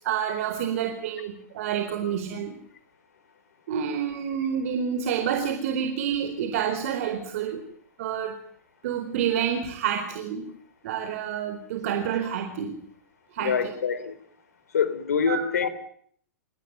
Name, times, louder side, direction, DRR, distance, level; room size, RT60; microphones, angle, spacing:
voice 1, 0.0-2.6 3.7-7.6 8.0-8.3 8.8-10.5 10.8-12.7 13.3-13.5 15.3-15.4, right 8 dB, 60° right, 6 dB, 4.3 m, -28 dB
voice 2, 13.4-14.1 14.7-15.7, left 6 dB, 75° left, 13 dB, 4.4 m, -25 dB
28.5 x 18.5 x 9.4 m, 0.64 s
hypercardioid pair, 105°, 9 cm